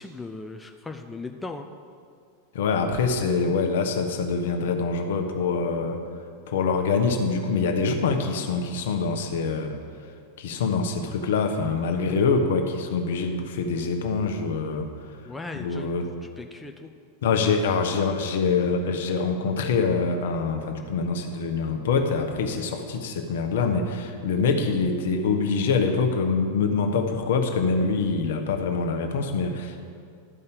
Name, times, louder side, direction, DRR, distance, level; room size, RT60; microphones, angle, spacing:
voice 1, 0.0-1.7 15.2-16.9, left 3 dB, 10° left, 3 dB, 0.5 m, -38 dB
voice 2, 2.5-6.0 6.5-9.7 10.4-14.9 15.5-16.1 17.2-29.8, left 4 dB, 55° left, 5 dB, 1.0 m, -25 dB
12.0 x 5.5 x 6.8 m, 2.2 s
figure-of-eight pair, 90°, 0 cm